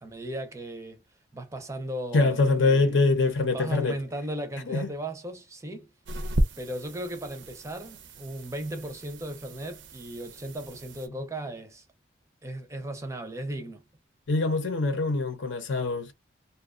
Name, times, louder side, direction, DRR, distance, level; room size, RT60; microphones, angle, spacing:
voice 1, 0.0-1.0 1.3-3.0 3.5-5.9 6.3-11.9 12.4-13.8, right 1 dB, 15° right, 0.5 m, -36 dB
voice 2, 2.1-4.0 4.7-4.9 14.3-16.1, left 3 dB, 75° left, 0.7 m, -24 dB
sound 1, 6.0-11.1, right 1 dB, 80° right, 0.5 m, -34 dB
2.6 x 2.2 x 2.4 m
head